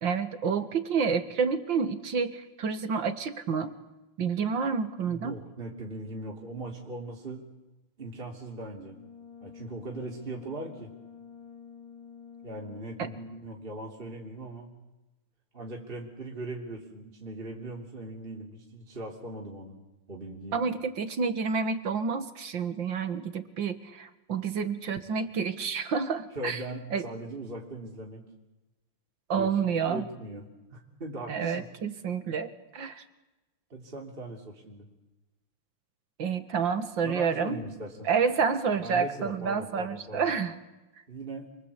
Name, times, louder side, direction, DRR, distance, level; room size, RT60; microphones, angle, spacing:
voice 1, 0.0-3.7 4.2-5.3 13.0-13.1 20.5-26.6 26.9-27.0 29.3-30.0 31.3-33.0 36.2-37.6 38.1-40.6, right 6 dB, 60° right, 10 dB, 2.3 m, -29 dB
voice 2, 5.0-7.5 8.0-9.0 9.4-10.9 12.4-14.7 15.5-19.8 20.1-20.6 26.3-28.2 29.3-30.4 30.7-31.6 33.7-34.9 37.0-38.1 38.7-40.3 41.1-41.5, right 2 dB, 25° right, -1 dB, 3.3 m, -40 dB
Brass instrument, 8.8-13.2, left 6 dB, 70° left, 3.2 m, -49 dB
28.0 x 23.5 x 8.4 m, 1.1 s
omnidirectional pair, 2.4 m